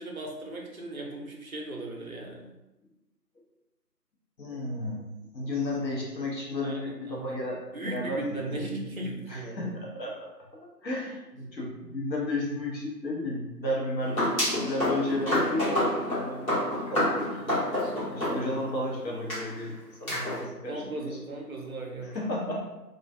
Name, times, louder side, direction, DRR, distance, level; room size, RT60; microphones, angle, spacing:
voice 1, 0.0-2.5 6.6-7.4 7.7-9.8 20.0-22.2, right 2 dB, 60° right, 0 dB, 0.5 m, -37 dB
voice 2, 4.4-5.0 5.3-8.6 9.3-17.5 18.0-21.1 22.0-22.7, left 1 dB, 90° left, -3 dB, 0.9 m, -33 dB
sound 1, 14.0-18.8 19.3-19.4 20.1-20.4, left 1 dB, 55° left, 1.2 m, -28 dB
2.4 x 2.1 x 2.4 m, 0.99 s
figure-of-eight pair, 165°, 50 cm